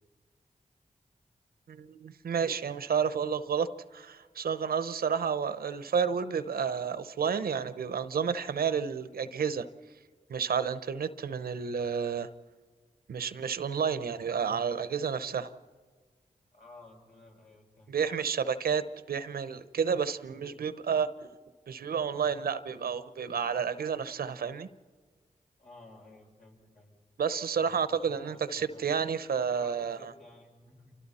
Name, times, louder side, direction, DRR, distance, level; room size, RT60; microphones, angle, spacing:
voice 1, 1.7-9.7 10.3-12.3 13.1-15.5 17.9-21.1 21.7-24.7 27.2-30.0, right 6 dB, 85° right, 13 dB, 0.8 m, -30 dB
voice 2, 16.5-17.9 20.3-20.5 25.6-27.0 27.6-28.9 29.5-31.0, left 2 dB, 70° left, -3 dB, 7.6 m, -54 dB
29.0 x 25.5 x 4.3 m, 1.5 s
cardioid pair, 40°, 15 cm